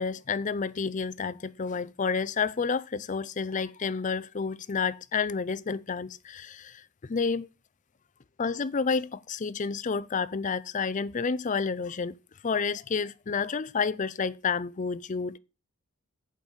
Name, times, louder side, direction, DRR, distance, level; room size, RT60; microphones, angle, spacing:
voice 1, 0.0-7.5 8.4-12.2 12.4-15.4, left 5 dB, 35° left, 0.5 m, -30 dB
8.8 x 5.3 x 6.6 m
head